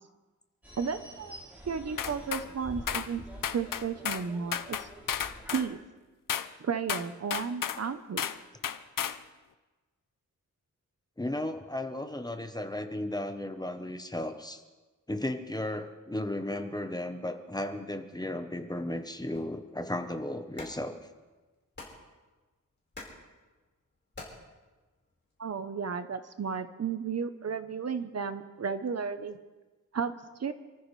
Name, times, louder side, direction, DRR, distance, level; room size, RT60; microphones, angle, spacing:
sound 1, 0.6-5.7, equal, 5° right, 4.2 m, -47 dB
voice 1, 0.8-3.2 3.5-4.9 5.5-5.8 6.6-8.2 25.4-29.4 29.9-30.1 30.4-30.5, right 6 dB, 50° right, 10 dB, 0.8 m, -33 dB
sound 2, 2.0-2.5 2.9-3.1 3.4-4.3 4.5-5.7 6.3-6.5 6.9-7.8 8.2-8.4 8.6-9.2, left 9 dB, 80° left, 0.7 m, -33 dB
voice 2, 11.2-14.6 15.1-21.0, left 1 dB, 10° left, 7 dB, 0.9 m, -35 dB
sound 3, 19.3-25.4, left 2 dB, 35° left, 4.5 m, -51 dB
28.5 x 14.0 x 3.2 m, 1.2 s
wide cardioid pair, 160°, 33 cm